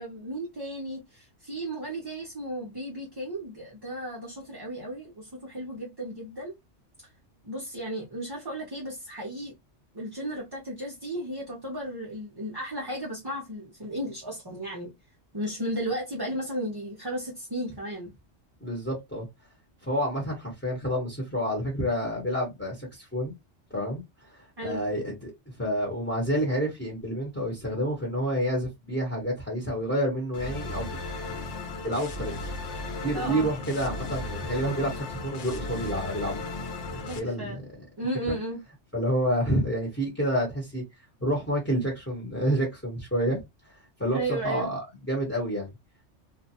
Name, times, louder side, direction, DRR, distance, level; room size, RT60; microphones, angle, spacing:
voice 1, 0.0-6.5 7.4-9.5 9.9-14.9 15.3-18.1 24.6-24.8 33.1-33.5 37.1-37.6 38.0-38.6 44.1-44.7, right 1 dB, 30° right, 0.5 m, -34 dB
voice 2, 18.6-19.3 19.8-23.3 23.7-25.3 25.6-30.9 31.3-31.4 31.8-32.4 33.0-36.4 37.0-37.6 38.3-38.4 38.9-40.8 41.2-43.4 44.0-45.7, equal, 10° left, 1.0 m, -29 dB
sound 1, 30.3-37.2, left 2 dB, 80° left, 1.0 m, -35 dB
2.5 x 2.2 x 2.7 m
omnidirectional pair, 1.2 m